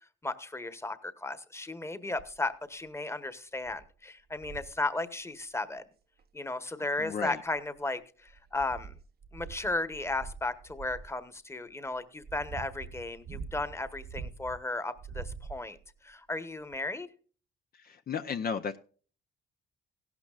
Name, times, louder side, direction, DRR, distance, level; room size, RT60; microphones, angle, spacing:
voice 1, 0.2-5.8 6.3-9.0 9.3-15.8 16.0-17.1, left 2 dB, 15° left, 12 dB, 1.2 m, -35 dB
sound 1, 2.2-2.5 3.1-3.2 3.6-3.9 4.3-4.8 6.2-6.3 7.1-7.8 8.3-11.1 11.9-14.6 15.0-15.9 16.7-16.8, right 5 dB, 50° right, 0.9 m, -45 dB
voice 2, 7.0-7.4 17.7-18.8, left 6 dB, 50° left, 7 dB, 0.7 m, -34 dB
16.0 x 12.0 x 2.4 m, 0.40 s
cardioid pair, 90°, 20 cm